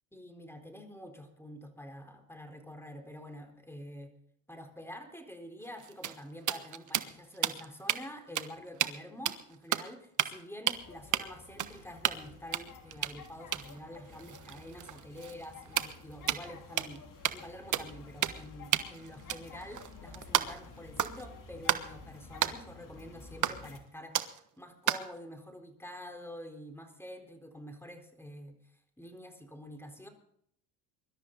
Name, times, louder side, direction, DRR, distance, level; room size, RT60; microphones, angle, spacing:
voice 1, 0.1-4.1 4.5-17.0 17.3-30.1, equal, 5° left, 5 dB, 4.2 m, -47 dB
sound 1, 5.6-8.0 8.4-8.5 8.8-9.0 9.3-9.9 10.2-10.4 10.7-10.8 11.1-11.2 11.6-12.3 12.5-16.5 16.8-17.0 17.2-17.5 17.7-17.9 18.2-18.5 18.7-20.7 21.0-21.3 21.7-21.9 22.4-22.5 23.4-23.8 24.1-24.4 24.9-25.1, right 10 dB, 40° right, 1.3 m, -32 dB
sound 2, 10.7-23.8, left 4 dB, 40° left, 3.1 m, -52 dB
23.5 x 13.0 x 4.1 m, 0.68 s
hypercardioid pair, 75°, 47 cm